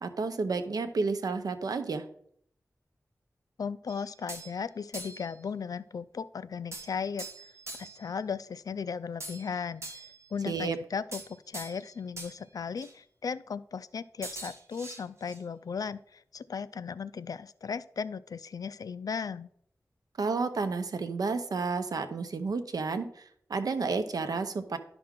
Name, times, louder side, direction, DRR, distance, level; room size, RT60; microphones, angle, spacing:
voice 1, 0.0-2.0 10.5-10.8 20.2-24.8, right 4 dB, 85° right, 9 dB, 0.8 m, -31 dB
voice 2, 3.6-7.3 7.8-19.5, left 6 dB, 75° left, 16 dB, 0.4 m, -36 dB
sound 1, 3.9-4.6 4.9-5.3 6.7-8.0 9.2-10.3 11.1-11.9 12.2-12.4 12.8-12.9 14.2-15.4, right 2 dB, 45° right, 2.0 m, -43 dB
11.5 x 6.0 x 3.7 m, 0.66 s
wide cardioid pair, 95°, 6 cm